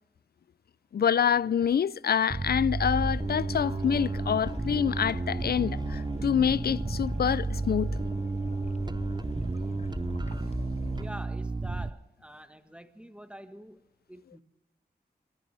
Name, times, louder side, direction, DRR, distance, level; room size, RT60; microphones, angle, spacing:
voice 1, 0.9-7.9, left 8 dB, 65° left, 0.4 m, -26 dB
Bass guitar, 2.3-11.9, right 3 dB, 25° right, 0.6 m, -32 dB
sound 1, 2.8-11.0, left 2 dB, 40° left, 1.2 m, -41 dB
Wind instrument woodwind instrument, 2.9-8.9, right 2 dB, 60° right, 3.1 m, -50 dB
voice 2, 10.9-13.8 14.1-14.4, equal, 5° right, 1.4 m, -46 dB
25.0 x 13.5 x 3.4 m
cardioid pair, 50°, 17 cm